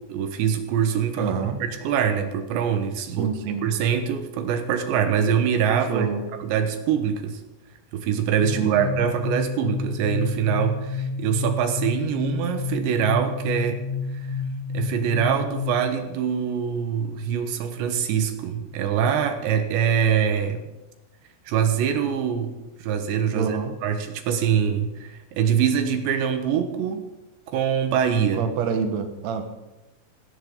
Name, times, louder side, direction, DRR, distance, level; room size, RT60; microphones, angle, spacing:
voice 1, 0.1-3.3 3.6-6.1 6.4-7.4 7.9-13.8 14.7-20.6 21.5-22.5 22.8-27.0 27.5-28.5, right 8 dB, 80° right, 7 dB, 3.5 m, -24 dB
voice 2, 1.2-1.6 3.2-3.7 5.9-6.2 8.5-8.9 23.3-23.7 28.3-29.4, right 6 dB, 55° right, 5 dB, 2.1 m, -27 dB
sound 1, 8.4-16.0, left 5 dB, 65° left, 1.8 m, -30 dB
17.5 x 17.5 x 4.0 m, 0.99 s
omnidirectional pair, 5.1 m